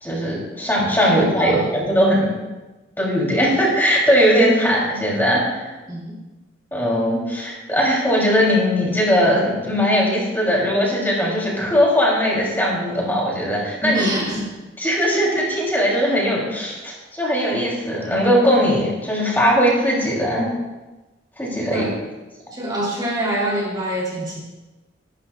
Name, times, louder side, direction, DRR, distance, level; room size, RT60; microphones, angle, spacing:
voice 1, 0.0-2.3 3.0-5.7 6.7-14.4 14.8-20.5 21.4-21.9, equal, 10° left, -4 dB, 3.4 m, -19 dB
voice 2, 1.0-1.7 5.9-6.1 13.8-14.6 21.6-21.9 22.5-24.4, right 1 dB, 20° right, -4 dB, 3.5 m, -26 dB
25.0 x 12.5 x 2.5 m, 1.1 s
head